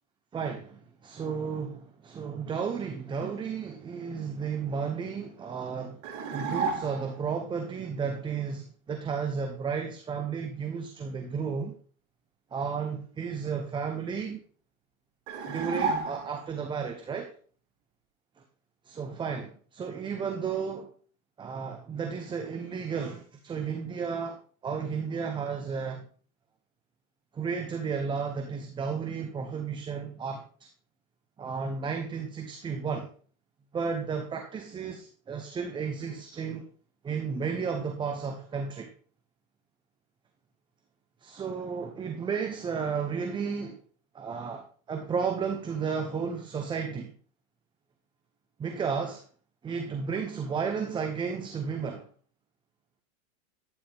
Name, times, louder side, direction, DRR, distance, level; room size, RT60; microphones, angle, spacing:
voice 1, 0.3-6.0 6.3-11.7 12.5-14.4 15.5-17.3 18.9-20.9 21.4-26.0 27.3-30.4 31.4-33.1 33.7-36.7 37.0-38.9 41.2-43.8 44.1-47.1 48.6-49.2 49.6-52.1, right 6 dB, 10° right, 5 dB, 0.8 m, -33 dB
sound 1, 6.0-7.2 15.3-16.6, right 5 dB, 55° right, 5.4 m, -32 dB
12.5 x 9.9 x 3.6 m, 0.42 s
supercardioid pair, 150°, 42 cm